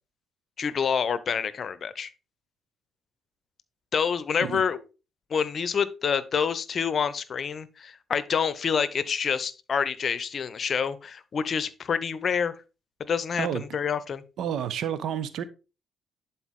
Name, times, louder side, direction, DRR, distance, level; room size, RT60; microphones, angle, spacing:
voice 1, 0.6-2.1 3.9-4.8 5.3-12.6 13.0-14.2, left 6 dB, 50° left, 0.7 m, -27 dB
voice 2, 14.4-15.4, right 9 dB, 65° right, 0.8 m, -30 dB
11.0 x 4.4 x 3.7 m
hypercardioid pair, 45°, 0 cm